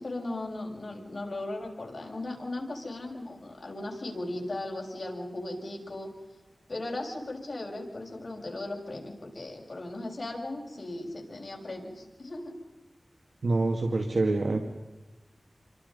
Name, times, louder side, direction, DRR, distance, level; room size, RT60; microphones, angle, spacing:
voice 1, 0.0-6.1 6.7-12.6, left 2 dB, 45° left, 0 dB, 7.0 m, -37 dB
voice 2, 13.4-14.6, right 2 dB, 75° right, 4 dB, 2.2 m, -26 dB
29.0 x 25.5 x 5.5 m, 1.1 s
wide cardioid pair, 80°, 0 cm